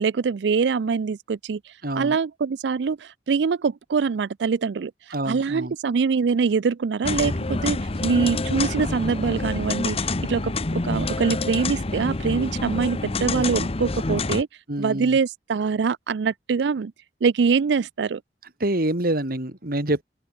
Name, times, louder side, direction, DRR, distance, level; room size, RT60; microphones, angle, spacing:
voice 1, 0.0-1.6 2.0-4.9 5.3-14.5 14.8-16.9 17.2-18.2, right 5 dB, 75° right, 0.4 m, -24 dB
voice 2, 1.8-2.2 5.1-5.7 13.3-13.7 14.7-15.2 18.6-20.0, right 1 dB, 55° right, 3.0 m, -26 dB
sound 1, 7.0-14.4, left 3 dB, 35° left, 0.9 m, -27 dB
open air
head